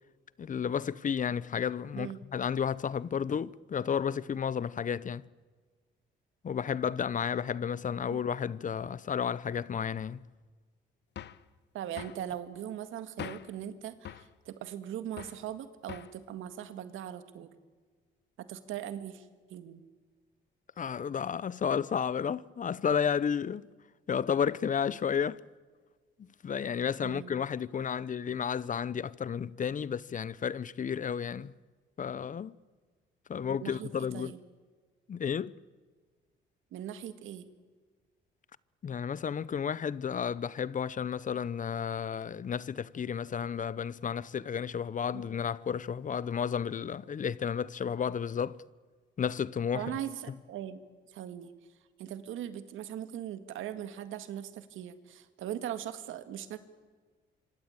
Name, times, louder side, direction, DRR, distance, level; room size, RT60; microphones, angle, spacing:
voice 1, 0.4-5.2 6.4-10.2 20.8-23.6 24.1-25.4 26.2-31.5 32.0-32.5 33.3-34.3 35.1-35.5 38.8-48.6 49.2-49.9, left 7 dB, 40° left, 0.7 m, -32 dB
sound 1, 11.2-11.5 12.0-12.2 13.2-13.6 14.1-14.3 15.2-15.4 15.9-16.2, left 10 dB, 60° left, 1.0 m, -43 dB
voice 2, 11.7-17.5 18.4-19.3 19.5-19.8 27.0-27.3 33.4-34.4 36.7-37.5 45.1-45.2 49.7-50.8 51.1-51.5 52.0-56.6, right 10 dB, 85° right, 1.9 m, -40 dB
25.5 x 25.5 x 9.0 m
cardioid pair, 90°, 20 cm